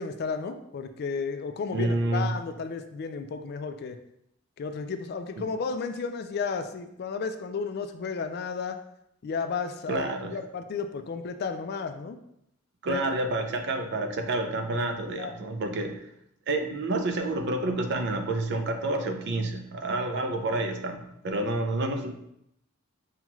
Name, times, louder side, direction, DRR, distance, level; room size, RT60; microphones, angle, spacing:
voice 1, 0.0-4.0 4.6-8.8 9.2-12.2 12.9-13.2 15.1-15.4, left 5 dB, 50° left, 8 dB, 0.3 m, -33 dB
voice 2, 1.7-2.3 5.4-5.5 9.9-10.4 12.8-16.0 16.5-22.1, right 2 dB, 60° right, 5 dB, 0.5 m, -29 dB
5.6 x 2.3 x 3.0 m, 0.77 s
head